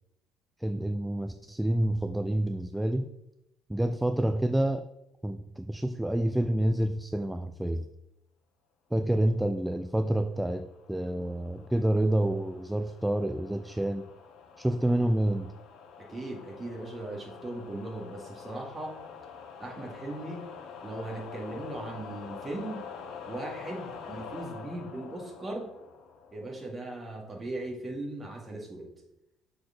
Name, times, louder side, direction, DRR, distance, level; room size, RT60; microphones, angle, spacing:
voice 1, 0.6-3.1 3.7-4.9 5.2-7.9 8.9-14.1 14.6-15.5, right 1 dB, 5° right, 9 dB, 0.3 m, -28 dB
sound 1, 10.2-26.7, left 6 dB, 65° left, 1.0 m, -46 dB
voice 2, 16.0-19.0 19.6-20.5 20.8-22.8 23.3-25.7 26.3-28.9, right 2 dB, 25° right, -1 dB, 2.1 m, -38 dB
6.6 x 4.4 x 5.9 m, 0.90 s
cardioid pair, 110°, 0 cm